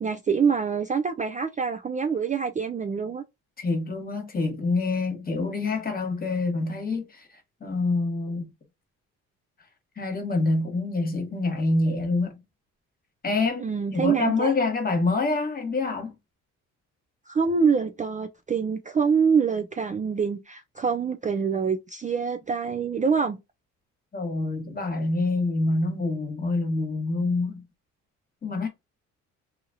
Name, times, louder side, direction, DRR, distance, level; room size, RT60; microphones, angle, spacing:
voice 1, 0.0-3.2 13.6-14.6 17.3-23.4, right 6 dB, 25° right, 0.4 m, -25 dB
voice 2, 3.6-7.3 7.6-8.5 10.0-12.4 13.2-16.1 24.1-27.6 28.4-28.7, left 3 dB, 30° left, 1.3 m, -26 dB
2.9 x 2.4 x 2.6 m
cardioid pair, 90°, 30 cm